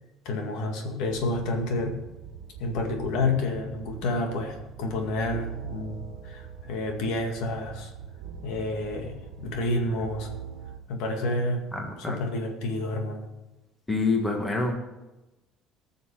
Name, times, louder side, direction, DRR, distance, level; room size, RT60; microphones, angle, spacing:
voice 1, 0.3-2.0 2.6-7.9 8.4-10.3 10.9-11.7 12.0-13.3, left 2 dB, 75° left, 3 dB, 2.1 m, -29 dB
sound 1, 1.1-10.8, right 7 dB, 80° right, 1.4 m, -42 dB
voice 2, 11.7-12.2 13.9-14.7, left 3 dB, 10° left, 1 dB, 1.7 m, -26 dB
19.0 x 6.6 x 4.9 m, 1.0 s
cardioid pair, 155°, 0 cm